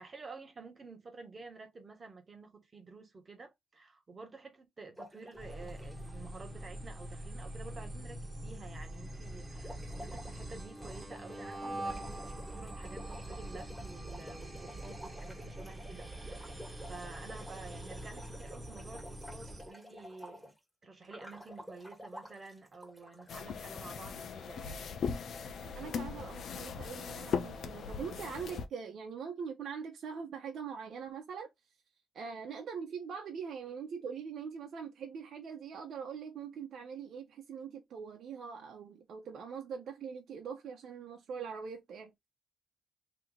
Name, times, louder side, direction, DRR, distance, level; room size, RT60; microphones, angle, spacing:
voice 1, 0.0-16.6 16.9-20.5 20.8-24.8, right 3 dB, 35° right, 1.4 m, -51 dB
sound 1, 5.0-6.1 9.5-20.6 21.1-23.5, equal, ahead, 1.6 m, -51 dB
sound 2, 5.3-19.7, right 1 dB, 15° right, 1.4 m, -44 dB
sound 3, 23.3-28.7, left 6 dB, 60° left, 0.7 m, -39 dB
voice 2, 25.8-31.5 32.1-42.1, right 6 dB, 65° right, 0.9 m, -42 dB
3.0 x 2.9 x 4.0 m
cardioid pair, 90°, 0 cm